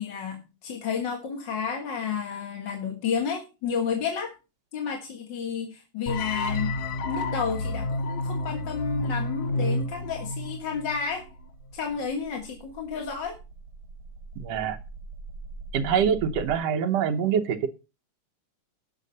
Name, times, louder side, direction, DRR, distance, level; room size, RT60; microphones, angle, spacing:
voice 1, 0.0-4.3 4.7-6.8 7.0-11.3 11.7-13.4, left 6 dB, 45° left, 1 dB, 1.9 m, -31 dB
sound 1, 6.1-11.2, left 2 dB, 75° left, 2.3 m, -30 dB
sound 2, 10.2-16.5, right 3 dB, 40° right, 3.4 m, -44 dB
voice 2, 14.4-14.8 15.7-17.7, right 7 dB, 65° right, 6 dB, 1.9 m, -25 dB
18.0 x 6.4 x 4.1 m, 0.30 s
omnidirectional pair, 3.5 m